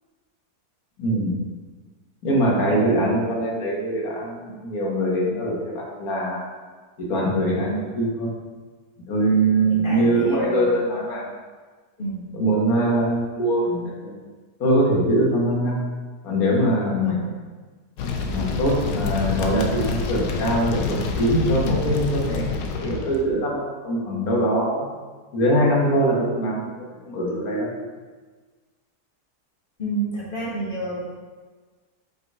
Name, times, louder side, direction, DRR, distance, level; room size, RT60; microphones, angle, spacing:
voice 1, 1.0-1.4 2.2-6.4 7.0-8.3 9.1-11.3 12.3-14.1 14.6-15.8 16.2-17.2 18.3-24.9 25.3-26.7 27.0-27.7, right 1 dB, 65° left, -3 dB, 1.7 m, -22 dB
voice 2, 9.7-10.9 12.0-12.2 17.0-17.2 29.8-31.0, right 1 dB, 35° left, -6 dB, 1.4 m, -29 dB
sound 1, 18.0-23.2, left 4 dB, 85° left, 1.2 m, -27 dB
5.3 x 4.0 x 4.5 m, 1.4 s
omnidirectional pair, 1.7 m